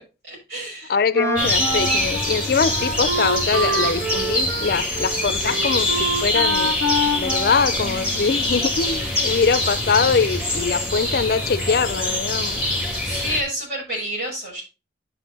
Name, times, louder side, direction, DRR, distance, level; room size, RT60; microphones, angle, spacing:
voice 1, 0.3-1.0 13.0-14.6, equal, 60° right, 5.9 m, -29 dB
voice 2, 0.9-6.7 7.2-12.6, left 5 dB, 55° left, 0.4 m, -23 dB
Wind instrument woodwind instrument, 1.1-8.4, right 1 dB, 90° right, 2.1 m, -26 dB
sound 1, 1.4-13.4, left 1 dB, 5° right, 2.5 m, -24 dB
10.0 x 5.6 x 3.9 m
head